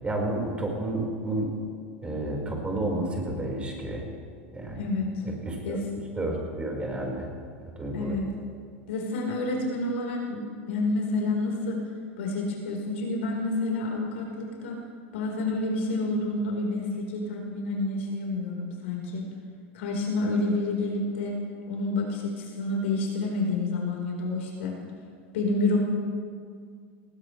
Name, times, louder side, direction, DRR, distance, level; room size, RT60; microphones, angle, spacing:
voice 1, 0.0-1.5 2.0-4.0 4.5-4.8 5.4-5.8 6.2-7.3 7.6-8.2, right 1 dB, 15° right, -1 dB, 5.0 m, -31 dB
voice 2, 4.8-5.1 5.6-5.8 7.9-8.3 8.9-11.8 12.2-14.8 15.1-19.2 19.7-21.4 21.6-24.7 25.3-25.8, left 2 dB, 80° left, -1 dB, 4.5 m, -29 dB
20.0 x 17.0 x 3.3 m, 2.1 s
hypercardioid pair, 100°, 7 cm